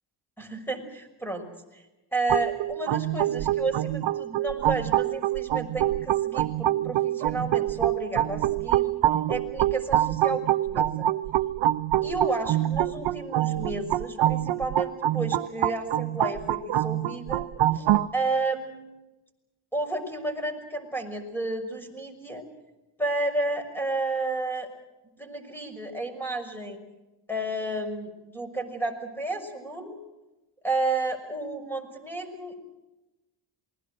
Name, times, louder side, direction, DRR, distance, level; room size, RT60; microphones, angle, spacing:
voice 1, 0.4-1.5 1.7-1.8 2.1-8.9 9.3-11.1 12.0-17.5 17.7-17.9 18.1-19.0 19.7-22.4 23.0-24.7 25.2-26.8 27.3-30.0 30.6-32.5, right 2 dB, 5° left, 6 dB, 6.1 m, -31 dB
sound 1, 2.3-18.1, right 13 dB, 65° right, 0.8 m, -25 dB
28.0 x 21.0 x 6.4 m, 1.0 s
cardioid pair, 90°, 48 cm